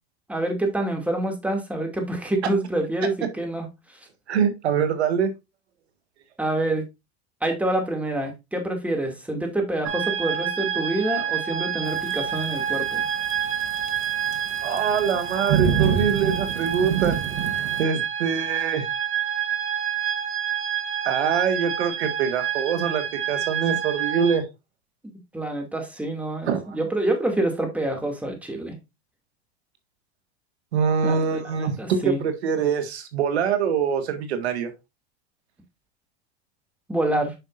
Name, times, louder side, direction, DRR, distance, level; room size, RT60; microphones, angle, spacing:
voice 1, 0.3-4.1 6.4-6.8 7.4-13.0 25.3-28.8 31.0-32.2 36.9-37.3, right 1 dB, 5° right, 2.4 m, -27 dB
voice 2, 4.3-5.3 14.6-17.2 17.5-18.9 21.1-24.4 26.5-26.6 30.7-34.7, right 7 dB, 85° right, 1.8 m, -24 dB
sound 1, 9.8-24.4, right 9 dB, 40° right, 2.6 m, -28 dB
Thunderstorm / Rain, 11.9-17.8, right 9 dB, 65° right, 1.2 m, -28 dB
8.6 x 5.5 x 2.5 m
supercardioid pair, 115°, 32 cm